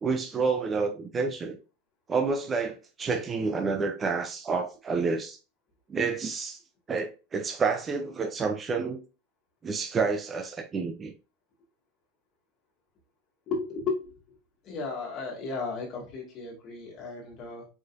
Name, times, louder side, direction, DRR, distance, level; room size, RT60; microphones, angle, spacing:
voice 1, 0.0-1.6 2.1-5.4 5.9-6.6 6.9-9.0 9.6-11.1, right 4 dB, 15° right, 0.5 m, -29 dB
voice 2, 13.5-14.1 14.6-17.7, left 4 dB, 30° left, 2.0 m, -34 dB
4.9 x 3.9 x 2.5 m
supercardioid pair, 165°, 0 cm